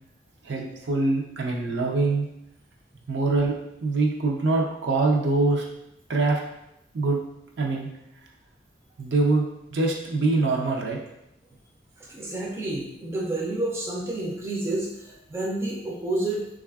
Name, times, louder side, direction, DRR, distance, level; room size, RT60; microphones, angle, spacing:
voice 1, 0.5-2.3 3.1-3.5 3.8-5.6 6.1-6.4 6.9-7.2 7.6-7.9 9.0-11.0, right 3 dB, 75° right, 0 dB, 0.5 m, -24 dB
voice 2, 12.0-16.5, right 2 dB, 15° right, -3 dB, 0.4 m, -29 dB
3.2 x 2.4 x 2.3 m, 0.82 s
head